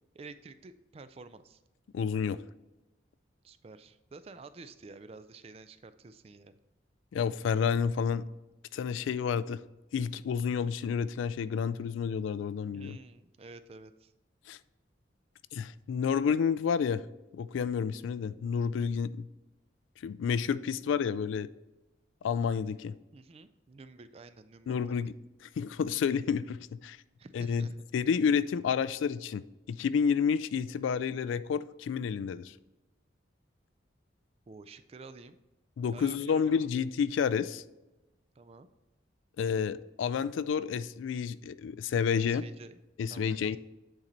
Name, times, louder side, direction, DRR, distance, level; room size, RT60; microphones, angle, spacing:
voice 1, 0.1-1.6 3.4-6.6 12.7-14.1 23.1-24.8 27.2-27.8 34.5-35.4 35.9-36.7 38.4-38.7 42.2-42.8 43.1-43.6, right 3 dB, 30° right, 12 dB, 0.3 m, -50 dB
voice 2, 1.9-2.4 7.1-8.3 8.7-9.6 9.9-13.0 14.5-14.6 15.5-17.0 17.3-19.3 20.0-21.5 22.2-22.9 24.7-25.1 25.4-27.0 27.3-27.7 27.9-32.5 35.8-37.6 39.4-42.4 43.0-43.6, left 6 dB, 80° left, 16 dB, 0.3 m, -30 dB
8.9 x 4.0 x 4.3 m, 1.0 s
head